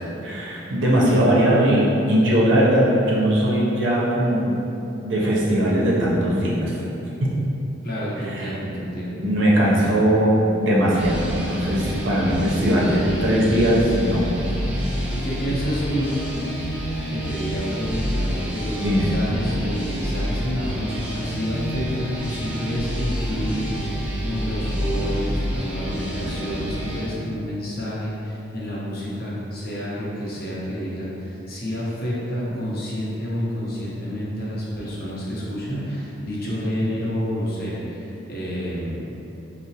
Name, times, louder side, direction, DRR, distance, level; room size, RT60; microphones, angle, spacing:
voice 1, 0.2-4.6 5.0-6.7 8.3-8.5 9.2-14.2 18.8-19.1, equal, 60° right, -5 dB, 0.5 m, -19 dB
voice 2, 7.8-9.3 14.8-16.2 17.1-39.2, equal, 50° left, -7 dB, 0.7 m, -29 dB
sound 1, 11.0-27.1, equal, 5° right, 0.4 m, -28 dB
4.7 x 2.0 x 2.7 m, 3.0 s
head